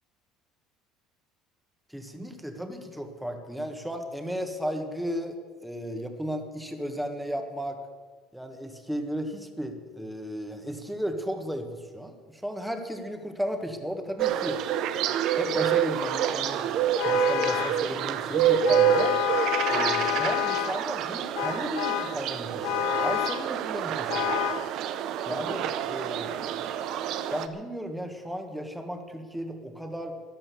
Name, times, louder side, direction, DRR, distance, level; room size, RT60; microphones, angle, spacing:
voice 1, 1.9-7.8 8.3-14.6 15.4-16.7 17.0-19.2 19.7-24.4 25.3-26.8 27.3-30.2, equal, 5° right, 5 dB, 1.6 m, -34 dB
sound 1, 14.2-27.5, right 9 dB, 60° right, 0.9 m, -27 dB
Vehicle horn car horn honking, 17.0-17.9 18.7-20.8 21.4-22.2 22.6-23.5 24.1-24.7, left 16 dB, 80° left, 0.5 m, -29 dB
14.0 x 10.5 x 7.0 m, 1.5 s
cardioid pair, 120°, 0 cm